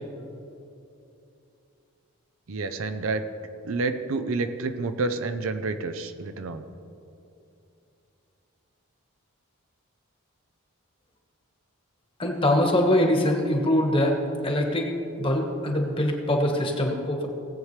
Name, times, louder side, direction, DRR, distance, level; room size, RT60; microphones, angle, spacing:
voice 1, 2.5-3.2 3.6-6.6, right 3 dB, 65° right, 9 dB, 0.6 m, -29 dB
voice 2, 12.2-14.2 14.4-14.9 15.2-17.3, left 1 dB, 25° left, 1 dB, 1.3 m, -23 dB
18.5 x 8.1 x 3.2 m, 2.7 s
head